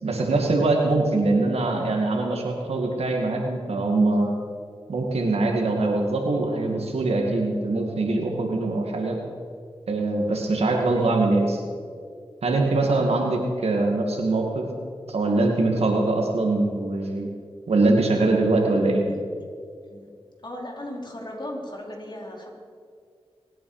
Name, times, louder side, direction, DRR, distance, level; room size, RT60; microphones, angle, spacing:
voice 1, 0.0-4.3 4.9-9.2 9.9-11.6 12.4-14.6 15.1-17.3 17.7-19.1, right 2 dB, 85° right, 1 dB, 2.4 m, -23 dB
voice 2, 10.8-11.1 18.6-18.8 19.9-20.1 20.4-22.5, left 1 dB, 45° left, -1 dB, 4.0 m, -37 dB
24.0 x 9.3 x 5.1 m, 2.2 s
cardioid pair, 45°, 10 cm